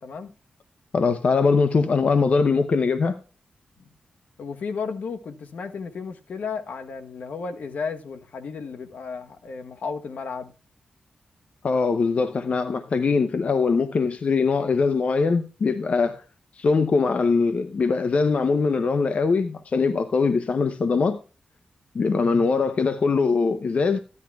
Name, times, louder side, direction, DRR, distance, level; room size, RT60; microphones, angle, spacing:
voice 1, 0.0-0.3 4.4-10.5, left 5 dB, 75° left, 1.0 m, -33 dB
voice 2, 0.9-3.2 11.6-16.2 16.6-21.2 21.9-24.0, left 4 dB, 60° left, 0.7 m, -22 dB
15.0 x 11.0 x 2.3 m
cardioid pair, 75°, 3 cm